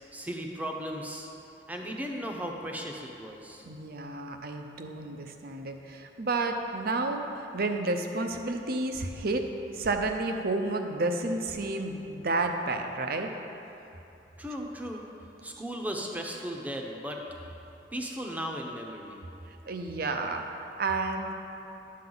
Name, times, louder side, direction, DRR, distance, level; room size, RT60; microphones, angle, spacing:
voice 1, 0.1-1.3 1.7-3.6 14.4-15.0 15.4-17.2 17.9-19.2, equal, 10° right, 1 dB, 0.8 m, -36 dB
voice 2, 3.6-9.4 9.7-13.3 14.9-15.0 19.5-21.3, right 2 dB, 55° right, 5 dB, 0.7 m, -31 dB
11.5 x 7.5 x 3.9 m, 2.9 s
head